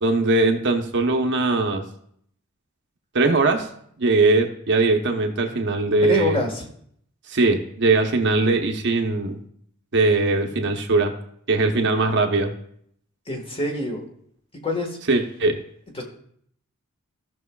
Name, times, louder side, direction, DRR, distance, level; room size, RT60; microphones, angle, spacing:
voice 1, 0.0-1.8 3.1-3.7 4.0-6.4 7.3-9.4 9.9-11.1 11.5-12.5 15.1-15.6, right 3 dB, 60° right, 4 dB, 0.9 m, -20 dB
voice 2, 6.0-6.7 13.3-14.0 14.6-15.0 15.9-16.0, left 2 dB, 25° left, 1 dB, 1.5 m, -26 dB
15.5 x 6.2 x 2.3 m, 0.66 s
head